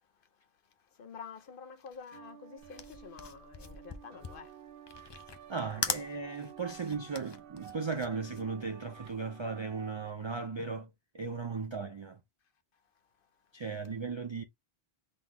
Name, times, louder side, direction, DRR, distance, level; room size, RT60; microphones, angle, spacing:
voice 1, 0.1-4.6 4.9-5.5 13.2-13.3, left 6 dB, 60° left, 0.8 m, -50 dB
sound 1, 2.1-10.1, right 10 dB, 65° right, 0.8 m, -52 dB
sound 2, 2.6-9.3, left 5 dB, 35° left, 0.4 m, -40 dB
voice 2, 5.5-10.9 11.1-12.2 13.5-14.4, right 4 dB, 50° right, 0.3 m, -36 dB
3.9 x 2.9 x 3.6 m
omnidirectional pair, 1.1 m